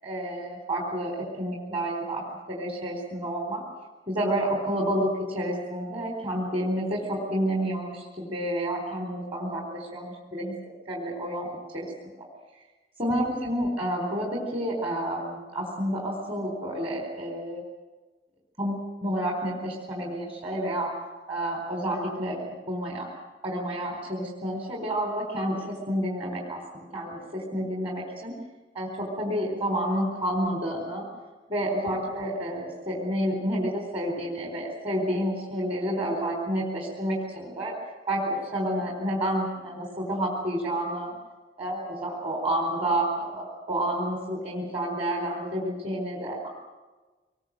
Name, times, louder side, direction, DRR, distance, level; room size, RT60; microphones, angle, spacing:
voice 1, 0.0-3.6 4.1-10.5 10.9-11.9 13.0-17.6 18.6-20.9 21.3-23.1 23.4-28.3 28.7-31.0 31.5-37.8 38.1-41.2 41.6-46.5, right 1 dB, 35° right, -1 dB, 4.1 m, -29 dB
24.5 x 21.0 x 7.7 m, 1.2 s
head